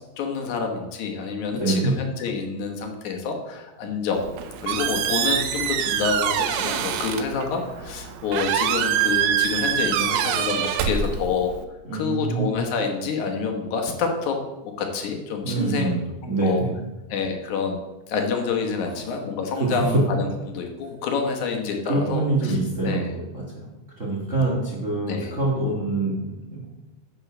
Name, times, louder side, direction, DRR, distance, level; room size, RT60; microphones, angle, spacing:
voice 1, 0.2-4.3 4.6-11.5 11.9-14.4 14.6-15.9 16.2-16.6 17.1-17.8 18.1-22.6 22.8-23.1 24.1-24.4 25.1-25.3, left 5 dB, 75° left, 2 dB, 2.5 m, -28 dB
voice 2, 1.5-1.9 11.9-12.5 15.4-16.0 16.3-16.7 19.6-19.8 21.9-23.7 24.0-26.7, right 3 dB, 30° right, -3 dB, 1.5 m, -25 dB
Squeak, 4.1-11.6, right 9 dB, 75° right, 2.0 m, -25 dB
9.9 x 5.3 x 6.1 m, 1.0 s
omnidirectional pair, 3.6 m